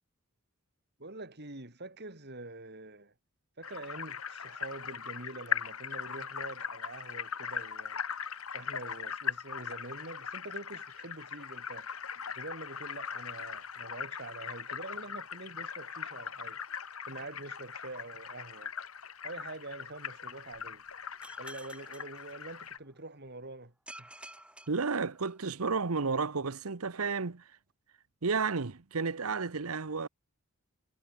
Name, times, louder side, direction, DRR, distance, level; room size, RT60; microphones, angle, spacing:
voice 1, 1.0-3.1 3.6-8.0 8.5-11.9 12.3-16.6 17.1-18.7 19.2-20.8 21.4-24.1, right 2 dB, 50° right, 4.1 m, -45 dB
sound 1, 3.6-22.8, left 7 dB, 80° left, 2.1 m, -40 dB
sound 2, 21.2-23.0 23.9-25.7, right 1 dB, 5° right, 7.5 m, -52 dB
voice 2, 24.7-27.4 28.2-30.1, right 4 dB, 85° right, 1.0 m, -32 dB
head